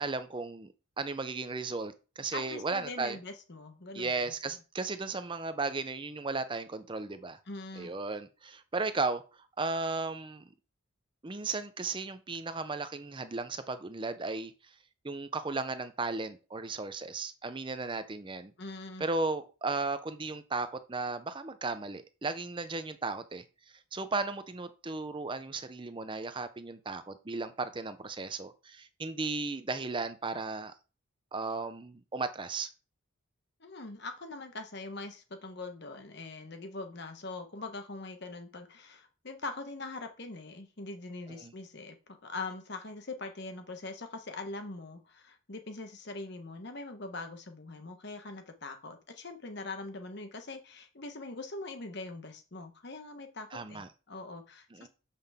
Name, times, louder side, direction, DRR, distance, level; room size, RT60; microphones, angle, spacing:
voice 1, 0.0-3.2 3.9-7.4 7.8-9.2 9.6-10.5 11.2-14.5 15.0-18.5 19.0-23.4 23.9-30.7 31.3-32.7 41.4-41.5 53.5-53.9 54.7-54.9, right 3 dB, 25° right, 0.6 m, -35 dB
voice 2, 2.3-4.3 7.5-7.9 18.6-19.1 33.6-54.9, left 3 dB, 55° left, 1.2 m, -42 dB
6.9 x 5.8 x 3.5 m
head